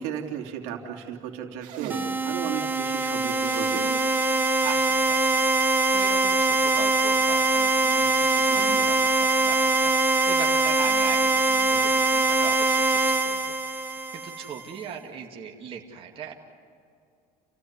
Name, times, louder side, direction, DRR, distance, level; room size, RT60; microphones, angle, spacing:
voice 1, 0.0-3.9, right 9 dB, 80° right, 2 dB, 2.9 m, -34 dB
sound 1, 1.6-2.1 3.3-4.1 4.5-4.6 5.0-5.1 7.7-8.9 9.2-9.3 11.0-11.3, right 8 dB, 60° right, 2.5 m, -40 dB
sound 2, 1.9-14.6, right 3 dB, 15° right, 1.1 m, -23 dB
voice 2, 4.6-9.9 10.3-13.5 14.1-16.3, right 7 dB, 35° right, 0 dB, 2.2 m, -39 dB
29.0 x 16.0 x 9.6 m, 2.4 s
cardioid pair, 135°, 15 cm